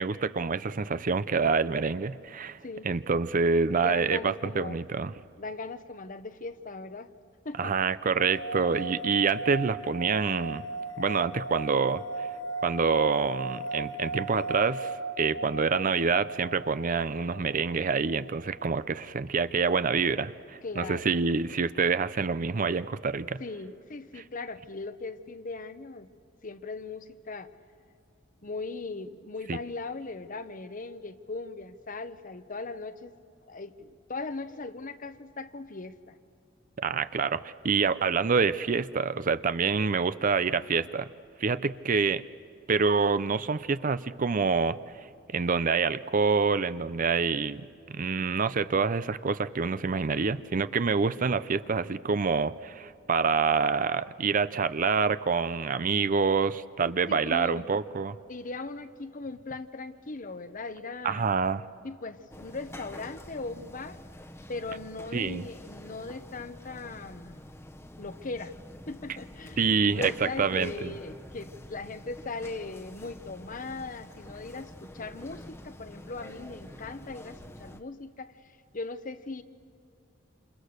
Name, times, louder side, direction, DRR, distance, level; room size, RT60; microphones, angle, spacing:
voice 1, 0.0-2.6 2.8-5.1 7.6-10.6 11.0-12.3 12.6-23.4 29.5-29.6 36.8-41.1 41.4-42.2 42.7-45.1 45.3-47.6 47.9-58.2 61.0-61.7 65.1-65.4 69.6-70.9, right 5 dB, 45° right, 14 dB, 0.6 m, -27 dB
voice 2, 3.8-4.8 5.4-7.1 7.4-7.9 20.6-21.1 23.4-26.1 26.4-27.5 28.4-33.1 33.5-36.2 57.1-57.7 58.3-61.4 61.8-64.0 64.5-67.5 68.0-68.5 68.9-79.4, left 3 dB, 45° left, 11 dB, 1.0 m, -39 dB
sound 1, 8.2-19.5, right 3 dB, 85° left, 1.7 m, -37 dB
sound 2, 62.3-77.8, left 1 dB, 15° left, 1.0 m, -47 dB
28.0 x 27.5 x 6.6 m, 2.5 s
head